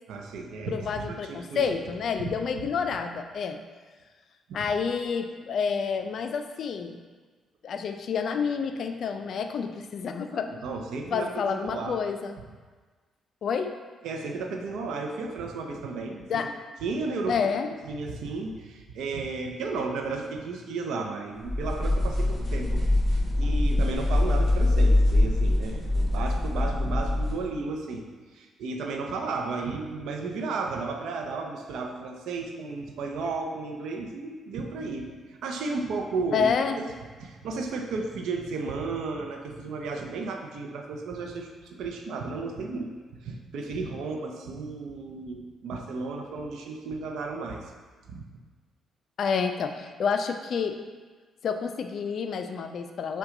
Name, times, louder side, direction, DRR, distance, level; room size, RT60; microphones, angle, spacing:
voice 1, 0.1-1.6 2.2-2.3 4.6-4.7 10.3-12.0 14.0-16.5 16.8-17.4 17.9-22.8 23.1-28.1 28.3-36.5 37.2-42.9 43.2-47.7 48.1-48.2, right 3 dB, 80° right, 3 dB, 0.5 m, -33 dB
voice 2, 0.7-3.6 4.5-7.0 7.6-10.5 11.1-12.4 13.4-13.7 16.3-16.5 17.3-17.7 36.3-36.8 49.2-50.8 51.4-53.2, left 6 dB, 60° left, 7 dB, 0.3 m, -29 dB
sound 1, 21.4-27.4, left 1 dB, 10° left, 1.0 m, -24 dB
5.7 x 2.3 x 3.7 m, 1.4 s
cardioid pair, 90°, 0 cm